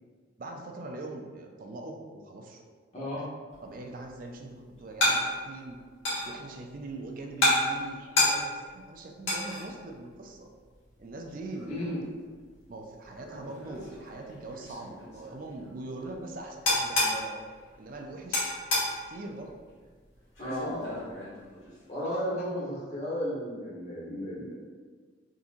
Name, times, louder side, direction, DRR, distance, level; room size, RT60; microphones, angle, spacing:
voice 1, 0.4-2.6 3.1-3.3 3.6-5.8 6.3-10.5 11.0-11.7 12.7-17.4 17.8-18.5 19.1-19.6, right 2 dB, 45° right, 2 dB, 0.4 m, -42 dB
voice 2, 2.9-3.3 11.7-12.0 20.4-21.1 21.9-24.6, equal, 35° left, -8 dB, 1.0 m, -34 dB
sound 1, 3.5-22.0, left 1 dB, 90° left, 1.4 m, -33 dB
3.7 x 2.8 x 2.5 m, 1.5 s
head